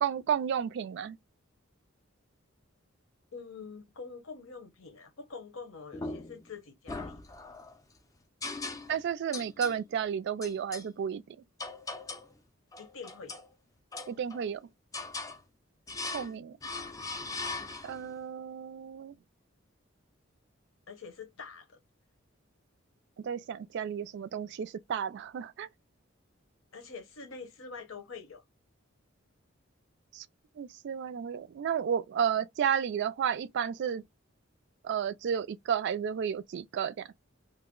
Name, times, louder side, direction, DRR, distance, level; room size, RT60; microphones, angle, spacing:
voice 1, 0.0-1.2 8.9-11.2 14.1-14.6 16.1-16.6 17.8-19.2 23.2-25.7 30.1-30.3 30.6-34.0 34.8-37.1, right 8 dB, 60° right, 0.3 m, -32 dB
voice 2, 3.3-7.2 12.8-13.4 20.9-21.8 26.7-28.4, left 5 dB, 85° left, 0.8 m, -45 dB
sound 1, 5.9-6.5 6.9-7.8 8.4-9.1 9.3-9.8 10.4-10.9 11.6-12.3 12.7-13.5 13.9-14.5 14.9-15.4 15.9-16.3 16.6-18.1, left 3 dB, 15° left, 0.4 m, -39 dB
2.5 x 2.0 x 3.6 m
head